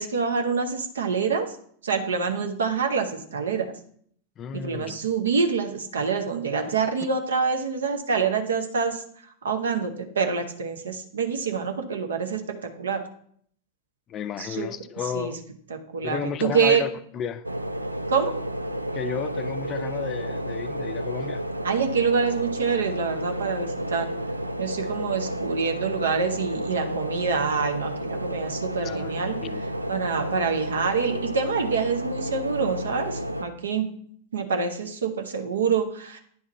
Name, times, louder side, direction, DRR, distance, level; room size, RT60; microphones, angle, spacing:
voice 1, 0.0-1.6 1.8-3.7 4.5-9.0 9.4-13.0 14.4-14.7 15.1-15.4 15.7-16.8 18.1-18.3 21.6-24.1 24.6-29.4 29.9-33.9 34.3-36.2, right 5 dB, 65° right, 0.9 m, -26 dB
voice 2, 4.4-5.0 14.1-15.4 16.0-17.4 18.9-21.4 24.8-24.9 28.8-29.1 29.4-29.6, left 8 dB, 30° left, 0.4 m, -33 dB
sound 1, 17.4-33.4, equal, 85° right, 0.4 m, -31 dB
9.5 x 3.6 x 4.1 m
figure-of-eight pair, 90°, 0 cm